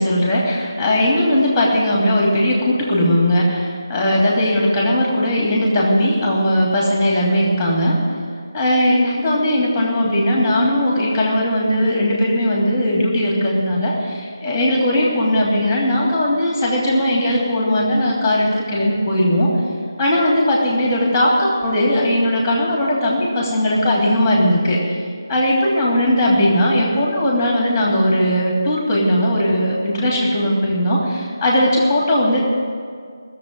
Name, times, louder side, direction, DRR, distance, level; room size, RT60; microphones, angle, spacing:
voice 1, 0.0-8.0 8.5-19.5 20.0-24.8 25.3-32.4, left 1 dB, 5° left, -3 dB, 2.9 m, -18 dB
17.0 x 7.3 x 9.2 m, 2.1 s
figure-of-eight pair, 160°, 2 cm